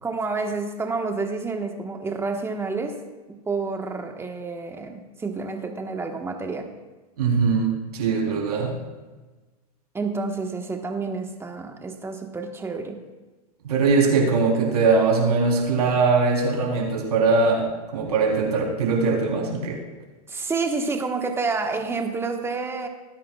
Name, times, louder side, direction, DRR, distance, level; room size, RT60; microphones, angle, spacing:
voice 1, 0.0-3.0 3.3-6.7 9.9-13.0 20.3-22.9, right 4 dB, 15° right, 4 dB, 1.2 m, -29 dB
voice 2, 7.2-8.7 13.6-17.7 17.9-19.8, right 4 dB, 80° right, -1 dB, 3.5 m, -21 dB
18.5 x 10.0 x 2.3 m, 1.2 s
hypercardioid pair, 115°, 20 cm